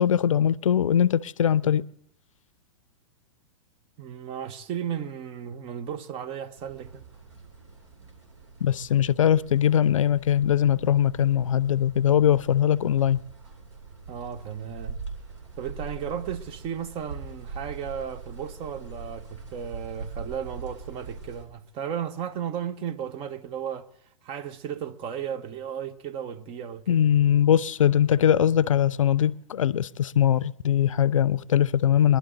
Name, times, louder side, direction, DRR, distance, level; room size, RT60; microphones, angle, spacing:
voice 1, 0.0-1.8 8.6-13.2 26.9-32.2, left 9 dB, 85° left, 0.5 m, -21 dB
voice 2, 4.0-7.1 14.1-15.0 15.6-23.9 24.2-27.0, right 8 dB, 35° right, 0.9 m, -34 dB
sound 1, 6.6-21.4, right 4 dB, 70° right, 3.4 m, -42 dB
22.0 x 11.5 x 3.9 m
hypercardioid pair, 115°, 16 cm